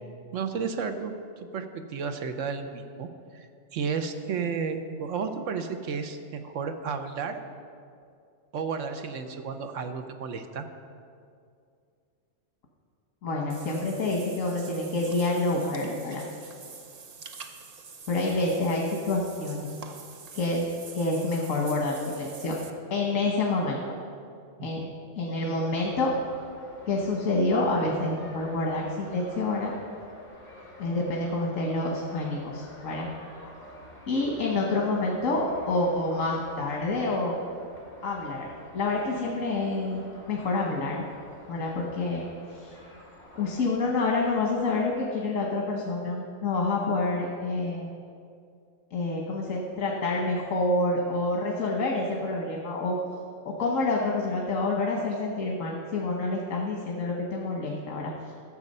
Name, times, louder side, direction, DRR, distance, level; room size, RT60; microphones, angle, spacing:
voice 1, 0.3-7.4 8.5-10.7 24.6-24.9, right 5 dB, 70° right, 7 dB, 1.1 m, -33 dB
voice 2, 13.2-16.3 18.1-19.7 20.3-20.6 20.9-22.6 22.9-23.8 24.6-24.8 25.2-26.1 26.9-29.7 30.8-33.1 34.1-37.4 38.0-41.0 41.5-42.7 43.3-47.9 48.9-52.9 53.4-58.3, left 2 dB, 80° left, -1 dB, 1.5 m, -28 dB
Water / Bathtub (filling or washing), 13.5-22.7, right 5 dB, 40° right, 0.6 m, -46 dB
sound 1, 25.8-44.9, left 1 dB, 45° left, 2.3 m, -49 dB
13.0 x 7.2 x 5.4 m, 2.4 s
omnidirectional pair, 1.3 m